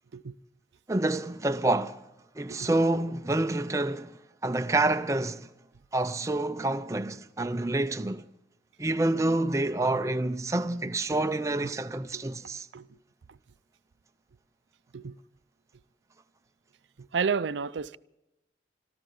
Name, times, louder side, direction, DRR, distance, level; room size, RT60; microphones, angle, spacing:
voice 1, 0.9-2.0 2.4-4.2 4.4-5.5 5.9-8.2 8.8-12.7, right 2 dB, 15° right, 0.5 m, -28 dB
voice 2, 17.0-18.0, right 5 dB, 85° right, 0.5 m, -32 dB
25.5 x 14.0 x 3.8 m
head